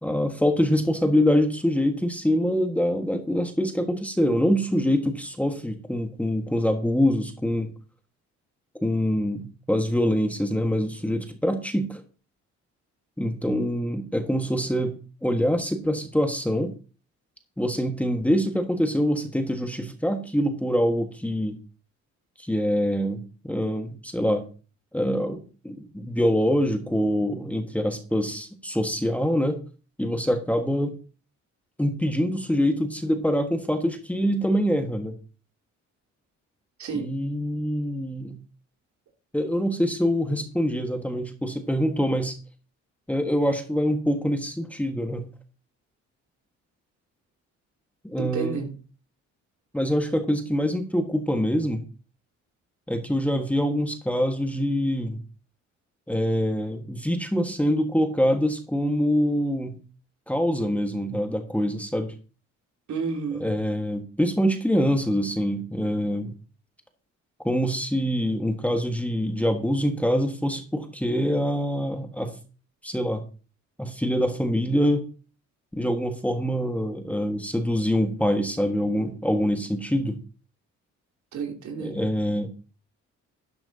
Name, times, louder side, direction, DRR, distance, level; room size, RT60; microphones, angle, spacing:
voice 1, 0.0-7.7 8.8-12.0 13.2-16.7 17.6-21.6 22.4-24.4 24.9-29.6 30.0-30.9 31.8-35.1 36.9-38.4 39.3-42.4 43.1-45.3 48.0-48.6 49.7-51.8 52.9-55.2 56.1-59.8 60.3-62.1 63.4-66.3 67.4-72.4 72.8-73.2 73.8-75.0 75.7-80.2 81.8-82.5, equal, 5° left, 5 dB, 1.5 m, -25 dB
voice 2, 48.2-48.7 62.9-63.5 81.3-82.0, right 5 dB, 70° right, 1 dB, 3.1 m, -31 dB
12.0 x 10.5 x 2.8 m, 0.36 s
cardioid pair, 90°, 30 cm